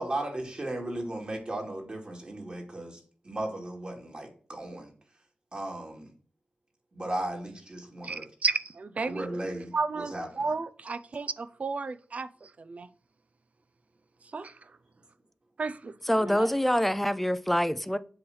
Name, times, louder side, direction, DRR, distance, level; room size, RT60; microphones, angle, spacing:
voice 1, 0.0-3.0 3.2-4.9 5.5-6.1 6.9-8.3 9.1-10.3, right 1 dB, 40° right, 2.5 m, -36 dB
voice 2, 8.0-9.3 9.7-12.9 14.3-14.5 15.6-16.5, right 4 dB, 55° right, 0.5 m, -33 dB
voice 3, 16.1-18.0, equal, 5° left, 0.5 m, -25 dB
7.7 x 3.2 x 5.6 m
wide cardioid pair, 90°, 3 cm